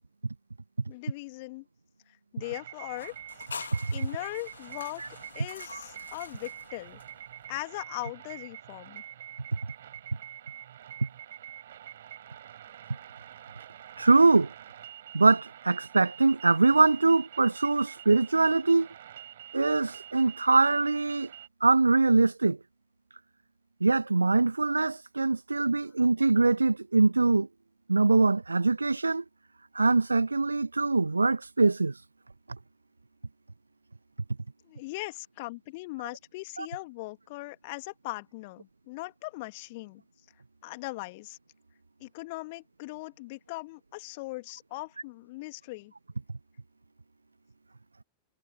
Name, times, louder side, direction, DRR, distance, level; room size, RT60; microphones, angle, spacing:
voice 1, 0.9-1.7 2.3-3.1 3.9-5.0 5.3-7.0 7.5-9.0 34.6-40.0 40.6-41.4 42.0-45.9, left 23 dB, 50° left, 2.2 m, -39 dB
sound 1, 2.4-21.5, right 11 dB, 60° right, 6.1 m, -46 dB
sound 2, 2.9-7.5, left 5 dB, 75° left, 3.2 m, -45 dB
voice 2, 14.0-14.5 15.1-18.9 19.5-21.3 21.6-22.6 23.8-27.5 27.9-29.2 29.7-31.9 36.6-36.7, right 3 dB, 80° right, 1.5 m, -23 dB
figure-of-eight pair, 90°, 0 cm